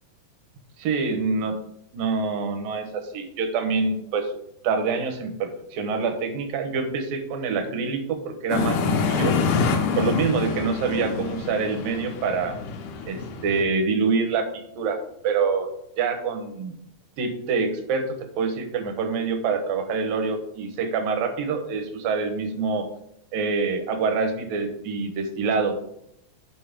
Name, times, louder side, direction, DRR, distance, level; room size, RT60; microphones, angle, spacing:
voice 1, 0.8-1.6 1.9-4.3 4.6-9.7 10.0-12.6 13.1-15.0 15.2-15.7 16.0-16.7 17.2-22.9 23.3-25.8, right 4 dB, 75° right, 6 dB, 2.7 m, -26 dB
sound 1, 8.5-13.6, left 5 dB, 85° left, 2.9 m, -26 dB
7.9 x 5.2 x 5.1 m, 0.78 s
omnidirectional pair, 4.2 m